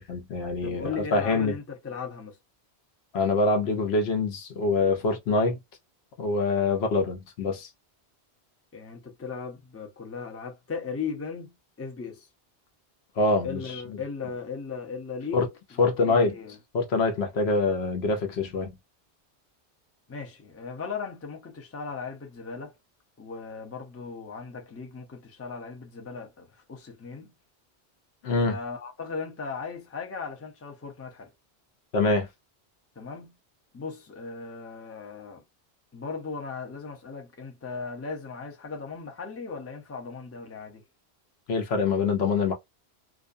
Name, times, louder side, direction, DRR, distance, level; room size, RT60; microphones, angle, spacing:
voice 1, 0.0-1.5 3.1-5.6 6.2-7.7 13.2-13.8 15.3-15.4 15.8-16.4 16.7-18.7 28.2-28.6 31.9-32.3 41.5-42.5, left 3 dB, 75° left, 0.9 m, -25 dB
voice 2, 0.6-2.4 6.7-6.8 8.7-12.3 13.4-16.6 20.1-22.7 23.2-27.3 28.4-31.3 33.0-33.4 33.7-35.4 35.9-40.8, left 5 dB, 20° left, 0.5 m, -37 dB
2.4 x 2.2 x 2.5 m
omnidirectional pair, 1.1 m